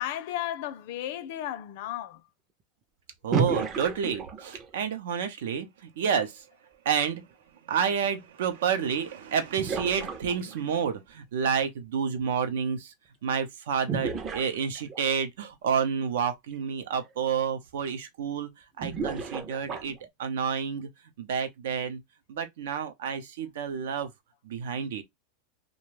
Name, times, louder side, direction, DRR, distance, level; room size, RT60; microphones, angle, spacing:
voice 1, 0.0-2.2, left 12 dB, 55° left, 0.4 m, -34 dB
voice 2, 3.2-6.4 6.8-7.2 7.7-12.9 13.2-18.5 18.8-20.9 21.2-22.0 22.3-24.1 24.4-25.0, right 7 dB, 90° right, 0.7 m, -29 dB
sound 1, 3.3-4.8 8.7-8.8 9.6-10.7 13.9-15.2 16.5-16.6 17.0-17.1 18.8-20.1, right 5 dB, 25° right, 0.4 m, -32 dB
2.5 x 2.2 x 3.1 m
supercardioid pair, 160°, 0 cm